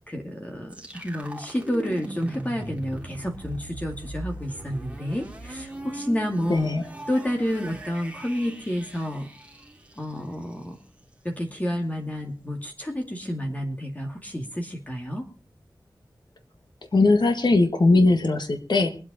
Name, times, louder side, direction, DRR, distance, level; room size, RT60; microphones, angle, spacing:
voice 1, 0.1-6.6 7.1-9.3 10.0-10.8 11.2-15.2, equal, 20° left, 1 dB, 2.3 m, -30 dB
sound 1, 0.7-10.5, right 1 dB, 15° right, 2.8 m, -39 dB
voice 2, 6.5-6.8 16.9-18.9, left 2 dB, 75° left, 6 dB, 1.9 m, -19 dB
23.5 x 8.4 x 4.3 m, 0.35 s
wide cardioid pair, 80°, 8 cm